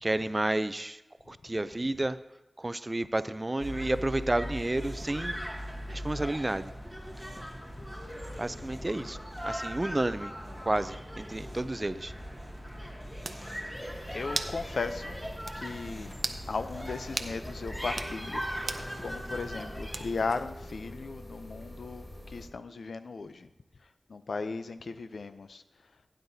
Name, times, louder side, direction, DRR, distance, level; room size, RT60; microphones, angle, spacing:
voice 1, 0.0-1.0 1.3-2.2 2.6-5.4 5.9-6.7 8.4-10.3 10.6-12.1, right 2 dB, 30° right, 14 dB, 0.4 m, -31 dB
sound 1, 3.6-20.2, equal, 10° left, 2.1 m, -39 dB
sound 2, 12.8-12.9 13.2-13.4 14.3-14.6 15.0-15.1 15.5-15.6 16.2-16.4 17.2-17.3 17.9-18.1 18.7-18.9 19.9-20.3, right 3 dB, 80° right, 0.6 m, -35 dB
sound 3, 13.7-22.5, left 1 dB, 35° left, 1.8 m, -46 dB
voice 2, 14.1-15.2 15.5-16.1 16.5-18.5 19.0-23.5 24.1-25.6, left 4 dB, 90° left, 11 dB, 0.5 m, -36 dB
16.0 x 9.5 x 2.7 m, 0.97 s
cardioid pair, 50°, 0 cm